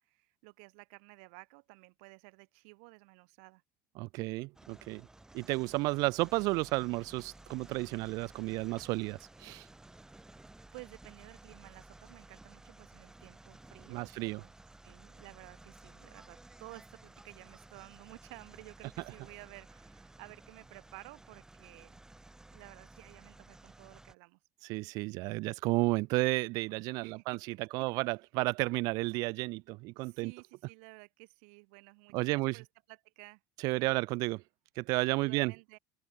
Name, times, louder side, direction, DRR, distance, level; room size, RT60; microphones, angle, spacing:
voice 1, 0.0-3.6 10.7-14.5 14.8-22.0 22.5-24.4 27.0-27.2 27.8-27.9 29.9-33.4 33.8-33.9 35.2-35.8, right 34 dB, 90° right, 6.1 m, -53 dB
voice 2, 4.0-5.1 5.3-9.6 13.9-14.4 24.7-30.3 32.1-32.6 33.6-34.4 34.8-35.5, right 23 dB, 70° right, 0.5 m, -32 dB
sound 1, 4.6-24.2, right 2 dB, 10° right, 7.0 m, -55 dB
open air
cardioid pair, 125°, 7 cm